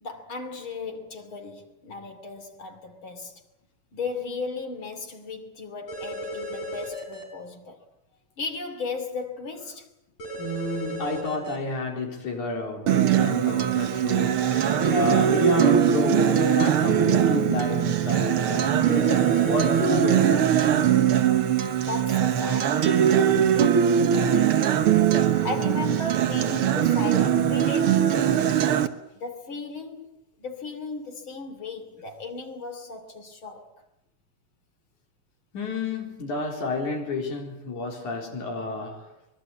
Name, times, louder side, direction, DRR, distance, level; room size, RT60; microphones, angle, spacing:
voice 1, 0.0-3.4 3.9-7.8 8.4-9.9 21.9-24.7 25.4-28.1 29.1-30.1 30.4-33.8, left 3 dB, 45° left, 3.3 m, -36 dB
sound 1, 5.9-7.2 10.2-11.6 14.5-15.9 18.8-20.2, equal, 65° left, 6.6 m, -35 dB
voice 2, 10.4-20.6 35.5-39.1, left 3 dB, 85° left, 5.3 m, -30 dB
Acoustic guitar, 12.9-28.9, right 9 dB, 55° right, 1.8 m, -21 dB
24.5 x 21.0 x 8.5 m
omnidirectional pair, 3.3 m